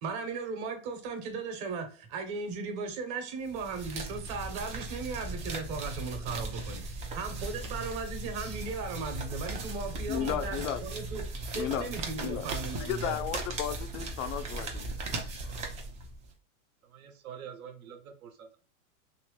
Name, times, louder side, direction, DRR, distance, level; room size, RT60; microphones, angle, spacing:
voice 1, 0.0-11.2 11.5-13.2, right 4 dB, 40° right, 1.1 m, -37 dB
sound 1, 3.5-16.3, right 2 dB, 15° right, 0.4 m, -38 dB
voice 2, 10.1-10.8 11.5-11.9 12.2-12.5 12.8-15.6, left 10 dB, 65° left, 0.5 m, -35 dB
voice 3, 16.9-18.6, right 8 dB, 75° right, 1.0 m, -46 dB
3.0 x 2.9 x 3.1 m
hypercardioid pair, 130°, 43 cm